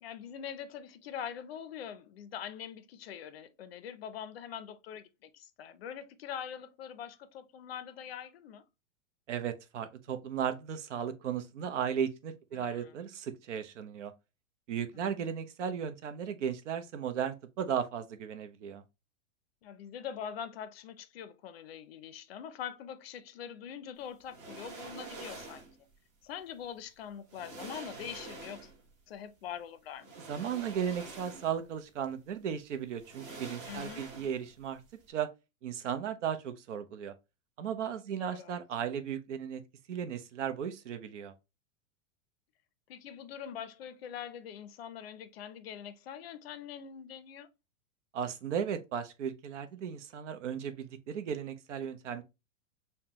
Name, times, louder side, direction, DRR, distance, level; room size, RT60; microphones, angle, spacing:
voice 1, 0.0-8.7 12.5-12.9 15.0-15.2 19.6-25.6 26.2-28.7 29.1-30.1 33.7-34.1 38.2-38.5 42.9-47.5, left 8 dB, 50° left, 0.5 m, -43 dB
voice 2, 9.3-14.1 14.7-18.8 30.3-34.8 35.1-35.3 35.6-37.1 37.6-39.6 39.9-41.3 48.1-52.2, right 8 dB, 65° right, 0.7 m, -35 dB
sound 1, 24.3-25.8 26.8-26.9 27.3-28.9 30.0-31.7 32.1-32.2 33.0-34.6 34.9-35.0, right 3 dB, 25° right, 0.7 m, -46 dB
5.6 x 2.2 x 2.9 m
supercardioid pair, 180°, 39 cm